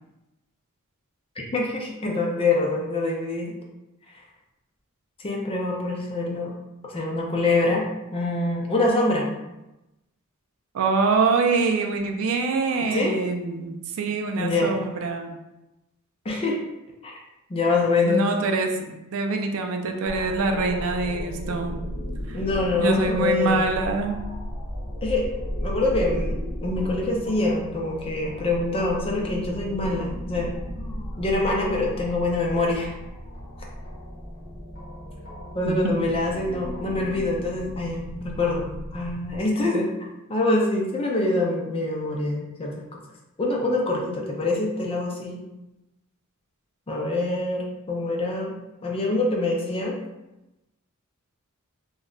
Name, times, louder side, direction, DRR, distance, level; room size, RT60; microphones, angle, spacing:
voice 1, 1.5-3.5 5.2-6.5 6.9-9.3 12.9-13.1 14.4-14.8 16.3-16.6 17.0-17.1 17.5-18.3 22.3-23.7 25.0-25.3 25.6-30.5 31.2-32.9 35.5-38.7 38.9-39.9 40.3-42.7 43.4-45.4 46.9-48.5 48.8-50.0, left 2 dB, 25° left, -1 dB, 0.4 m, -25 dB
voice 2, 10.7-15.4 18.0-21.8 22.3-22.4 22.7-24.2 35.6-36.1, right 3 dB, 65° right, 4 dB, 0.4 m, -25 dB
sound 1, 20.0-39.4, equal, 45° left, 0.8 m, -35 dB
2.2 x 2.1 x 3.7 m, 0.96 s
head